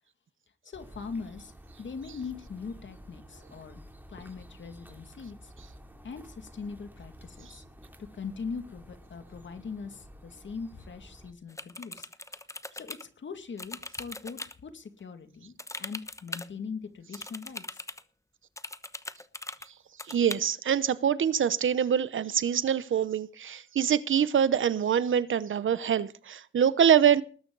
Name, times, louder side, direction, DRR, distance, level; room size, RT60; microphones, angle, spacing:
voice 1, 0.6-1.5 1.8-5.5 6.0-7.6 8.1-12.1 12.7-17.8, left 5 dB, 70° left, 2.3 m, -41 dB
sound 1, 0.7-11.3, equal, 10° right, 3.2 m, -51 dB
sound 2, 11.5-13.0 13.6-14.5 15.6-16.5 17.1-18.0 18.6-19.7 20.0-20.4, left 2 dB, 15° left, 1.0 m, -40 dB
voice 2, 20.1-27.2, right 8 dB, 80° right, 0.9 m, -25 dB
20.0 x 11.5 x 4.0 m
cardioid pair, 85°, 20 cm